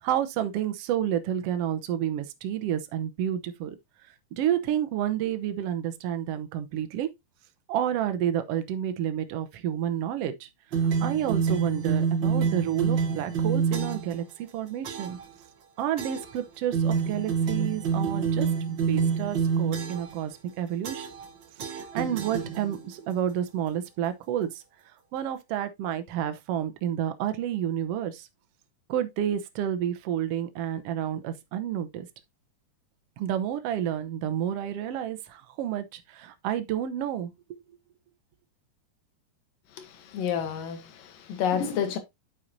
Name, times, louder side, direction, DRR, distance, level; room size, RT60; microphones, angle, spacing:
voice 1, 0.0-3.8 4.3-7.1 7.7-15.2 15.8-21.1 21.6-24.6 25.1-28.3 28.9-32.1 33.2-37.6, right 10 dB, 75° right, 1.4 m, -30 dB
sound 1, 10.7-14.2 14.8-15.3 16.0-16.4 16.7-20.2 20.8-21.3 21.6-22.9, right 6 dB, 55° right, 1.3 m, -27 dB
voice 2, 39.7-42.0, left 8 dB, 80° left, 3.1 m, -30 dB
9.0 x 6.6 x 2.6 m
omnidirectional pair, 3.9 m